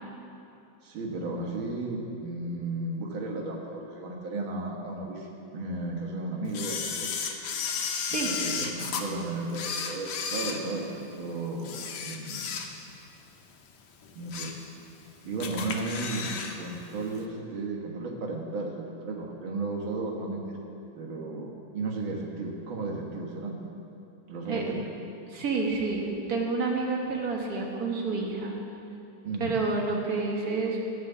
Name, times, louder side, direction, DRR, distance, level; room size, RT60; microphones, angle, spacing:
voice 1, 0.8-7.2 8.2-12.6 14.2-14.5 15.2-16.3 16.6-23.6 24.3-24.8 29.2-29.6, right 2 dB, 90° right, -1 dB, 2.2 m, -34 dB
Camera, 6.5-9.0 9.5-11.2 11.6-13.0 13.4-13.5 14.0-14.6 15.0-15.1 15.4-16.6 16.8-16.9, left 6 dB, 75° left, 1.6 m, -33 dB
voice 2, 25.3-28.6 29.4-30.8, right 3 dB, 50° right, 0 dB, 1.8 m, -29 dB
13.5 x 5.0 x 8.0 m, 2.8 s
omnidirectional pair, 2.1 m